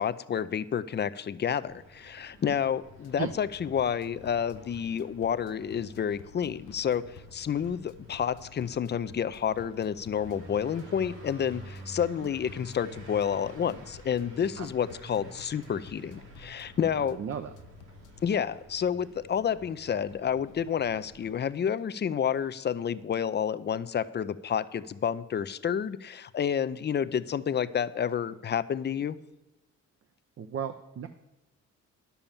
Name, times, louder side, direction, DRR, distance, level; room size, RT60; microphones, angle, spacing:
voice 1, 0.0-17.2 18.2-29.2, left 8 dB, 35° left, 14 dB, 0.6 m, -30 dB
sound 1, 1.6-21.3, right 1 dB, 80° right, 3.2 m, -50 dB
sound 2, 2.9-18.3, left 9 dB, 90° left, 0.7 m, -53 dB
voice 2, 17.1-17.5 30.4-31.1, right 8 dB, 50° right, 7 dB, 0.8 m, -34 dB
10.5 x 7.0 x 7.2 m, 1.0 s
cardioid pair, 90°, 30 cm